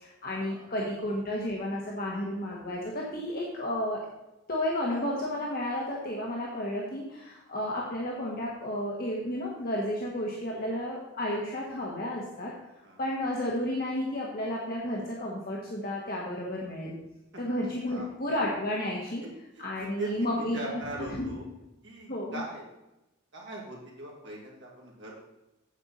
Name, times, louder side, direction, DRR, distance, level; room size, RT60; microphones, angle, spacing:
voice 1, 0.0-4.0 4.5-12.5 13.0-16.9 17.4-19.2 19.6-20.7 21.0-21.3 22.1-22.4, left 1 dB, 45° left, -3 dB, 1.4 m, -32 dB
voice 2, 17.7-18.1 19.5-21.4 21.8-22.6 23.3-25.1, right 1 dB, 60° right, -3 dB, 2.6 m, -41 dB
8.9 x 7.7 x 4.2 m, 0.94 s
head